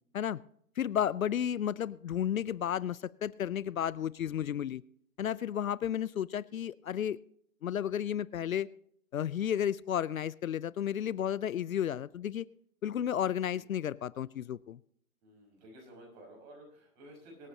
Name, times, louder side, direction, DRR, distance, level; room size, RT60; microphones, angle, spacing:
voice 1, 0.8-4.8 5.2-7.2 7.6-8.7 9.1-12.5 12.8-14.8, left 9 dB, 70° left, 20 dB, 0.6 m, -32 dB
voice 2, 13.5-13.8 15.2-17.5, right 1 dB, 25° right, 0 dB, 5.7 m, -53 dB
25.5 x 8.6 x 2.8 m, 0.68 s
figure-of-eight pair, 135°, 43 cm